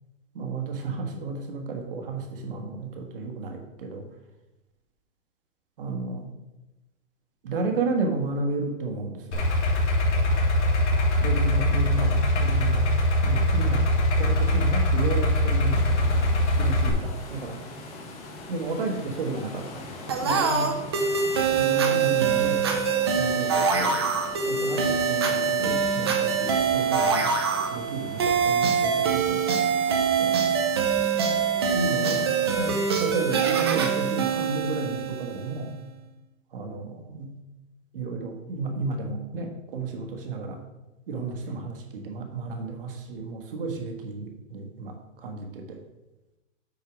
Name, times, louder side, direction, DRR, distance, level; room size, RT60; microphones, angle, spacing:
voice 1, 0.3-4.0 5.8-6.2 7.4-9.4 11.2-12.8 13.2-13.8 14.2-15.8 16.6-17.6 18.5-19.8 20.2-20.8 21.5-22.6 23.1-24.0 24.5-27.3 27.7-29.5 30.2-30.4 31.7-32.3 32.6-35.7 36.5-37.3 37.9-40.6 41.1-45.8, right 3 dB, 45° right, 3 dB, 1.5 m, -32 dB
Idling, 9.3-16.9, left 1 dB, 60° left, 2.8 m, -22 dB
sound 1, 15.7-33.6, left 2 dB, 30° left, 1.3 m, -42 dB
sound 2, 20.1-35.6, right 6 dB, 20° right, 0.6 m, -24 dB
8.2 x 4.7 x 6.0 m, 1.0 s
hypercardioid pair, 175°, 38 cm